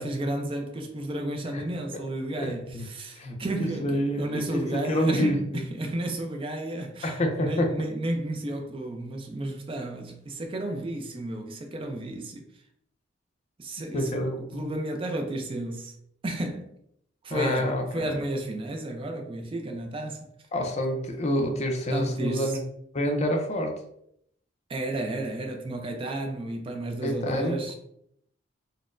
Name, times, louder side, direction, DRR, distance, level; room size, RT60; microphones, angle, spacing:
voice 1, 0.0-12.5 13.6-15.9 16.2-16.7 17.2-20.3 21.9-22.6 24.7-27.8, right 1 dB, 30° right, 0.4 m, -32 dB
voice 2, 2.3-2.9 3.2-5.6 7.0-7.7 13.9-14.7 17.3-18.2 20.5-22.6 22.9-23.7 27.0-27.8, equal, 35° left, 0.4 m, -28 dB
4.0 x 2.0 x 2.4 m
head